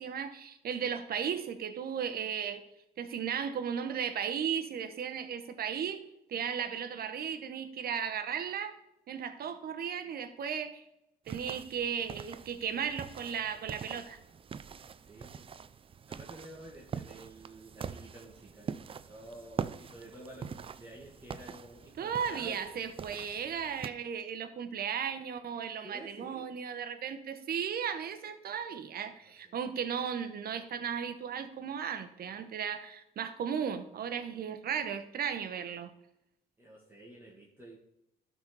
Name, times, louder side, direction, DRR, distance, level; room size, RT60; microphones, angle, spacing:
voice 1, 0.0-2.6 3.0-6.0 6.3-8.7 9.1-10.8 11.3-14.2 22.0-35.9, right 7 dB, 60° right, 10 dB, 1.0 m, -35 dB
sound 1, 11.3-23.9, right 6 dB, 30° right, 0.4 m, -44 dB
voice 2, 15.1-15.5 16.1-18.8 19.0-22.8 25.8-26.5 29.4-29.6 36.6-37.8, right 1 dB, 15° right, -5 dB, 2.1 m, -50 dB
12.0 x 4.1 x 4.7 m, 0.84 s
cardioid pair, 95°, 18 cm